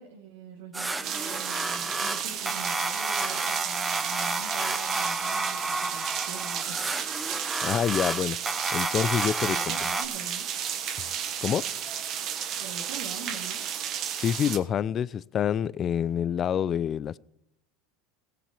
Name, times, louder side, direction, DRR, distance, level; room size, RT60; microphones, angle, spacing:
voice 1, 0.0-6.8 9.4-10.5 12.6-13.6, right 5 dB, 85° right, 1.9 m, -43 dB
sound 1, 0.7-10.1, right 2 dB, 15° right, 0.9 m, -31 dB
sound 2, 1.0-14.6, right 9 dB, 50° right, 1.4 m, -33 dB
voice 2, 7.6-8.4 8.7-9.8 11.0-11.1 11.4-11.7 14.2-17.2, left 9 dB, 35° left, 0.4 m, -27 dB
18.0 x 7.4 x 4.9 m
supercardioid pair, 115°, 0 cm